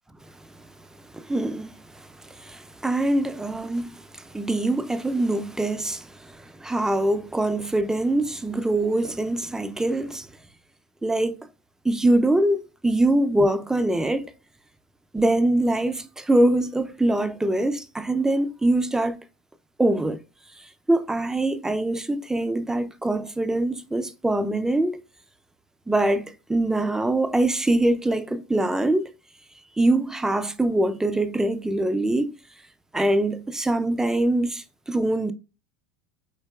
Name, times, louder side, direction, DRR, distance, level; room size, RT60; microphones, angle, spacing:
voice 1, 1.1-10.3 11.0-11.4 11.8-14.3 15.1-19.2 19.8-20.2 20.6-25.0 25.9-29.1 29.8-32.4 32.9-35.3, right 1 dB, 5° right, 0.3 m, -23 dB
4.5 x 2.8 x 2.2 m
supercardioid pair, 100°, 9 cm